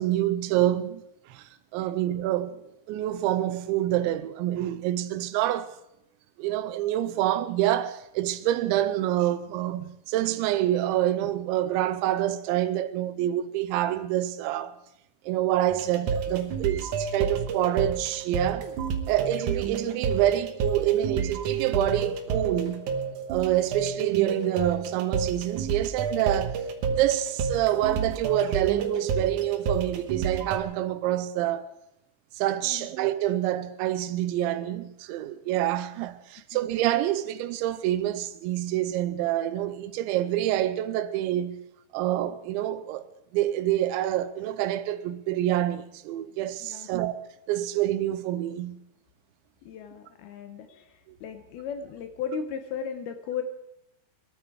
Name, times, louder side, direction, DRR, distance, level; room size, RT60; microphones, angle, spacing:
voice 1, 0.0-5.8 6.4-14.8 15.2-18.7 19.1-22.9 23.3-26.6 26.9-31.7 32.4-41.6 41.9-43.1 43.3-47.1 47.5-48.8, right 13 dB, 90° right, 3.1 m, -27 dB
sound 1, 15.7-30.6, right 6 dB, 65° right, 1.9 m, -30 dB
voice 2, 49.7-53.4, left 7 dB, 75° left, 2.5 m, -36 dB
22.0 x 13.5 x 4.8 m
omnidirectional pair, 5.2 m